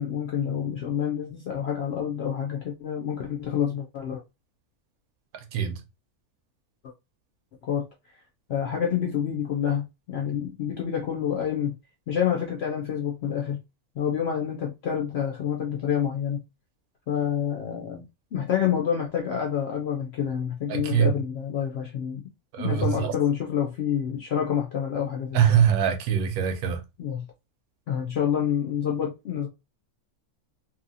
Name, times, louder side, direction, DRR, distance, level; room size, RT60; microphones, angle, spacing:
voice 1, 0.0-4.2 6.8-6.9 7.6-7.9 8.5-11.7 12.1-13.6 14.0-16.4 17.1-18.0 18.3-22.2 22.6-25.4 27.0-27.3 27.9-29.5, left 8 dB, 70° left, 0.6 m, -28 dB
voice 2, 20.7-21.1 22.5-23.1 25.3-26.8, right 9 dB, 85° right, 1.1 m, -23 dB
2.7 x 2.6 x 2.5 m
omnidirectional pair, 1.5 m